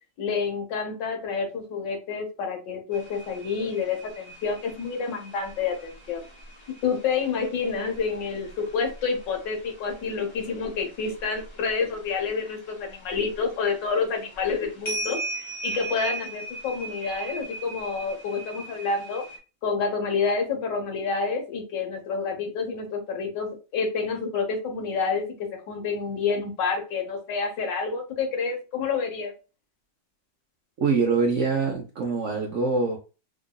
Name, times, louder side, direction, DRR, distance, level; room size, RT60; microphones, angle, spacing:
voice 1, 0.2-6.2 6.8-19.2 19.6-29.3, left 5 dB, 80° left, 1.6 m, -28 dB
sound 1, 2.9-9.5 9.9-11.5 11.9-13.2 13.9-14.0 14.3-19.4, right 3 dB, 40° left, 0.4 m, -38 dB
voice 2, 30.8-33.0, right 4 dB, 65° right, 0.7 m, -24 dB
4.7 x 2.4 x 2.2 m
omnidirectional pair, 1.9 m